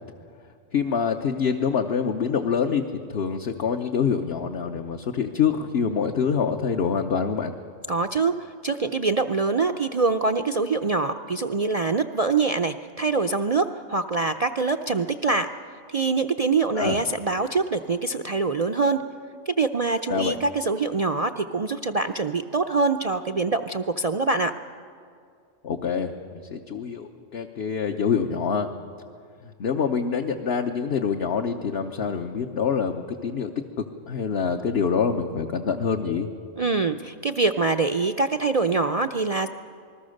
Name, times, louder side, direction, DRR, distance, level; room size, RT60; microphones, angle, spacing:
voice 1, 0.7-2.8 3.1-7.6 16.7-17.0 20.1-20.4 25.6-28.7 29.6-36.3, left 6 dB, 55° left, 3 dB, 1.2 m, -26 dB
voice 2, 7.9-8.3 8.6-15.5 15.9-19.0 19.5-24.5 36.6-39.5, right 4 dB, 45° right, 7 dB, 0.5 m, -24 dB
27.5 x 21.0 x 6.5 m, 2.3 s
omnidirectional pair, 1.3 m